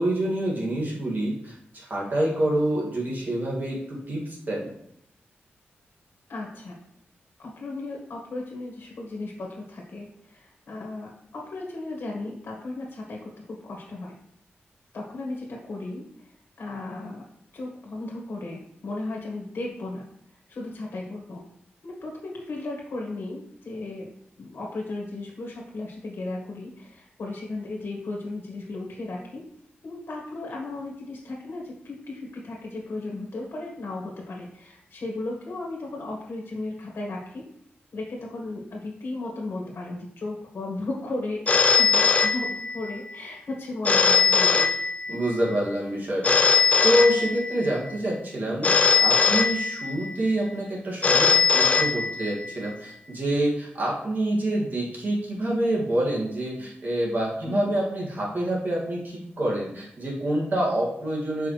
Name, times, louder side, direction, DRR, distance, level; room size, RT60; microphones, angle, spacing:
voice 1, 0.0-4.7 45.1-61.5, right 1 dB, 50° right, -4 dB, 2.5 m, -27 dB
voice 2, 6.3-6.8 7.4-14.2 14.9-16.0 16.6-17.2 17.5-20.1 20.5-21.4 21.8-24.1 24.4-29.4 29.8-37.4 37.9-44.7 57.4-57.7, left 2 dB, 70° left, -2 dB, 1.7 m, -35 dB
Telephone, 41.5-43.0 43.9-45.4 46.2-47.7 48.6-50.1 51.0-52.5, left 5 dB, 35° left, 0.5 m, -21 dB
6.5 x 5.4 x 3.4 m, 0.72 s
wide cardioid pair, 105°, 4 cm